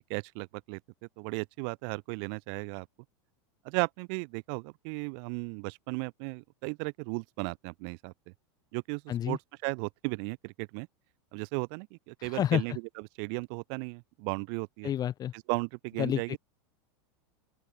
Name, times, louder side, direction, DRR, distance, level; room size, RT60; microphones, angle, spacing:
voice 1, 0.1-0.8 1.2-2.9 3.6-8.1 8.7-10.9 11.3-14.9 15.3-16.4, right 40 dB or more, 55° right, 5.2 m, -35 dB
voice 2, 12.2-12.6 14.8-15.3 16.0-16.4, left 10 dB, 25° left, 0.7 m, -29 dB
open air
supercardioid pair, 130°, 15 cm